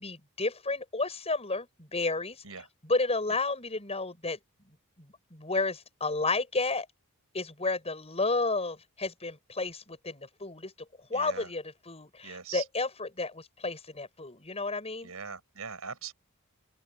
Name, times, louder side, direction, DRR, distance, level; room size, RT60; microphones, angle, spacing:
voice 1, 0.0-2.4 2.8-4.4 5.0-6.9 7.3-10.7 11.1-15.1, left 3 dB, 30° left, 7.6 m, -32 dB
voice 2, 11.1-11.5 12.2-12.6 15.0-16.1, right 6 dB, 70° right, 6.5 m, -41 dB
open air
head